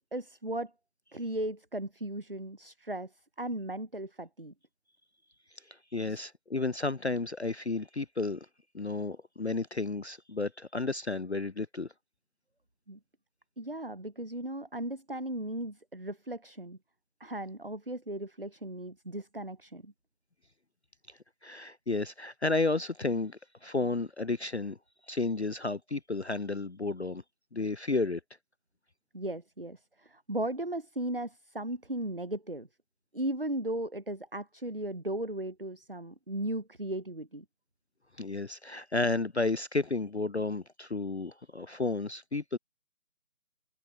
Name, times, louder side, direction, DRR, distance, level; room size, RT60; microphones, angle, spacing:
voice 1, 0.1-0.7 1.1-4.5 6.1-6.2 12.9-13.0 13.6-16.8 17.2-19.9 29.1-32.7 33.1-37.4, right 1 dB, 40° right, 0.5 m, -36 dB
voice 2, 5.7-8.5 8.7-11.9 21.1-24.8 25.1-27.2 27.5-28.2 38.2-42.6, left 3 dB, 50° left, 0.5 m, -32 dB
figure-of-eight pair, 175°, 44 cm